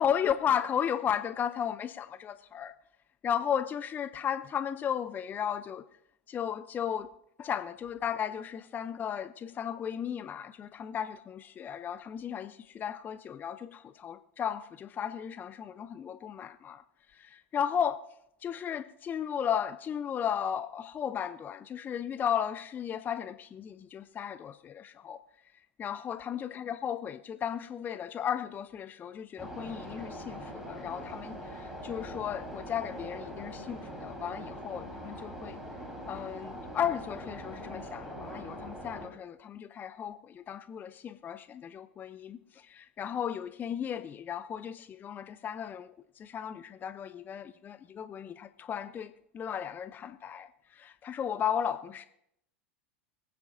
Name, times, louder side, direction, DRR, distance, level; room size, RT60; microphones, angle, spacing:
voice 1, 0.0-2.7 3.2-5.9 6.3-7.1 7.4-16.8 17.1-18.0 18.4-25.2 25.8-35.6 36.1-52.1, left 8 dB, 25° left, 0.5 m, -35 dB
sound 1, 29.4-39.1, equal, 5° right, 3.7 m, -42 dB
24.5 x 9.3 x 2.6 m
hypercardioid pair, 90°, 7 cm